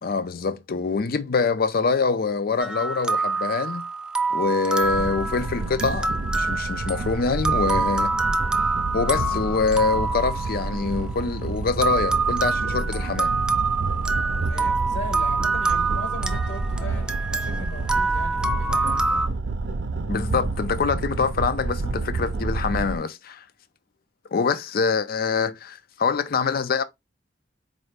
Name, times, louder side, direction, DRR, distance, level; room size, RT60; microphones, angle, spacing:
voice 1, 0.0-3.8 4.3-8.1 8.9-13.4 20.1-23.4 24.3-26.8, left 4 dB, 55° left, 0.5 m, -25 dB
sound 1, 2.6-11.2 11.8-19.3, right 3 dB, 5° right, 0.3 m, -26 dB
sound 2, 4.8-23.0, right 3 dB, 75° right, 0.5 m, -29 dB
voice 2, 14.3-19.1, left 2 dB, 70° left, 1.5 m, -39 dB
4.3 x 2.7 x 3.2 m
head